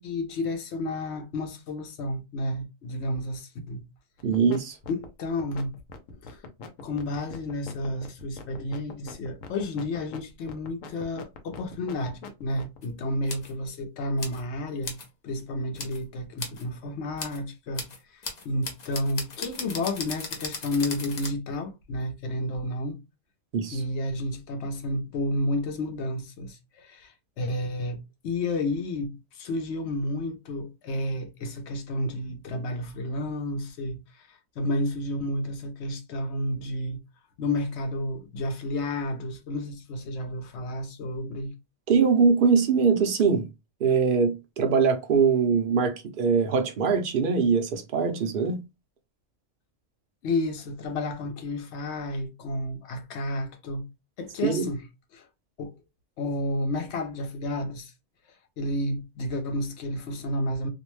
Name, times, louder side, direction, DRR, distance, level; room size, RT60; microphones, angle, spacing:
voice 1, 0.0-3.8 4.9-5.7 6.2-6.4 6.8-14.9 15.2-23.0 23.7-37.0 37.4-41.5 50.2-53.9 54.2-54.8 55.1-55.3 55.6-55.7 56.2-57.9 58.6-60.7, left 1 dB, 65° left, 0.9 m, -31 dB
sound 1, 4.2-4.6 4.8-12.8, left 4 dB, 90° left, 1.0 m, -42 dB
voice 2, 4.2-4.8 23.5-23.8 41.9-43.5 43.8-48.6 54.4-54.7, right 5 dB, 55° right, 0.6 m, -22 dB
sound 2, 12.8-12.9 13.3-13.5 14.2-14.4 14.8-15.1 15.8-16.0 16.4-16.6 17.2-17.4 17.7-21.3, left 4 dB, 45° left, 0.6 m, -37 dB
2.6 x 2.1 x 3.0 m
omnidirectional pair, 1.3 m